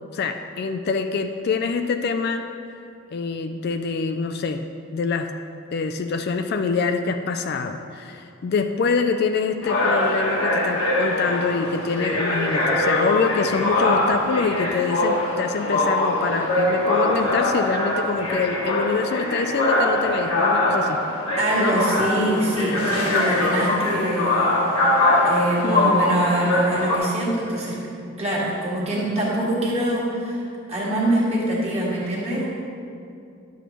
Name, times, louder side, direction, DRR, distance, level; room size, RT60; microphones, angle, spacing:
voice 1, 0.1-2.5 3.1-4.6 4.9-5.3 5.7-21.0 21.6-21.8 25.6-26.1, left 5 dB, 45° left, 7 dB, 0.3 m, -25 dB
sound 1, 9.6-27.0, left 1 dB, 75° left, 1.3 m, -22 dB
voice 2, 21.4-24.6 24.9-27.8 28.2-30.4 30.7-32.4, right 1 dB, 30° right, -5 dB, 1.7 m, -24 dB
11.0 x 7.0 x 3.0 m, 2.4 s
head